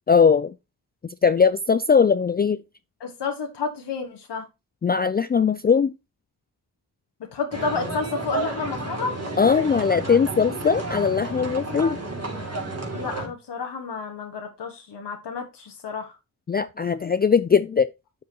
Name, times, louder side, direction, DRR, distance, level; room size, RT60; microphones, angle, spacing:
voice 1, 0.1-0.5 1.0-2.6 4.8-5.9 9.4-12.0 16.5-17.9, left 6 dB, 25° left, 0.3 m, -20 dB
voice 2, 3.0-4.5 7.2-9.2 12.9-16.2, left 5 dB, 75° left, 1.5 m, -31 dB
sound 1, 7.5-13.3, right 2 dB, 35° right, 2.6 m, -31 dB
7.3 x 7.1 x 2.9 m
supercardioid pair, 40°, 41 cm